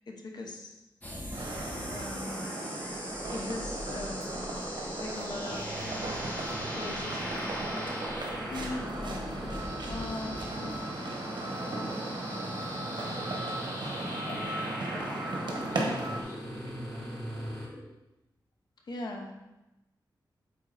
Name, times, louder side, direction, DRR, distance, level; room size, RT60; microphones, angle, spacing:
voice 1, 0.1-0.8 1.9-2.6 3.3-4.6 5.0-5.9 6.7-7.9 8.5-10.8 14.2-14.4 14.9-15.0 18.8-19.3, left 2 dB, 65° left, 2 dB, 1.0 m, -41 dB
sound 1, 1.0-17.8, equal, 20° left, 1.4 m, -40 dB
sound 2, 1.3-16.2, right 2 dB, 85° right, 1.1 m, -37 dB
sound 3, 5.4-17.7, right 1 dB, 5° left, 1.8 m, -44 dB
voice 2, 13.0-17.6, equal, 55° right, -5 dB, 2.4 m, -44 dB
8.4 x 3.9 x 3.9 m, 0.98 s
wide cardioid pair, 145°, 8 cm